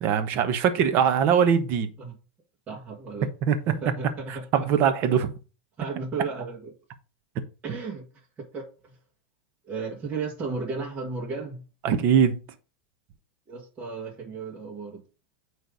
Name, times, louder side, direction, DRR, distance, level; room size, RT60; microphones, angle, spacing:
voice 1, 0.0-1.9 3.4-3.6 4.5-5.3 11.8-12.4, right 7 dB, 45° right, 1.1 m, -21 dB
voice 2, 2.7-3.3 3.7-4.7 5.8-6.7 7.6-8.0 8.5-9.0 9.7-11.6 13.5-15.0, right 4 dB, 25° right, 1.9 m, -34 dB
8.9 x 3.3 x 5.3 m
supercardioid pair, 135°, 5 cm